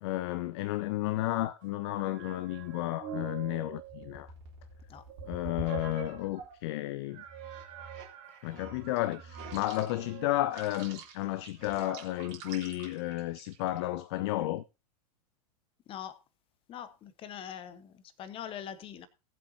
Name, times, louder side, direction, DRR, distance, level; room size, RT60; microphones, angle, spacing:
voice 1, 0.0-4.3 5.2-7.2 8.4-14.6, left 16 dB, 45° left, 0.5 m, -32 dB
sound 1, 1.6-6.6 7.1-13.8, right 6 dB, 45° right, 3.3 m, -45 dB
voice 2, 16.7-19.1, left 9 dB, 25° left, 1.1 m, -43 dB
19.0 x 7.6 x 2.8 m
figure-of-eight pair, 95°, 20 cm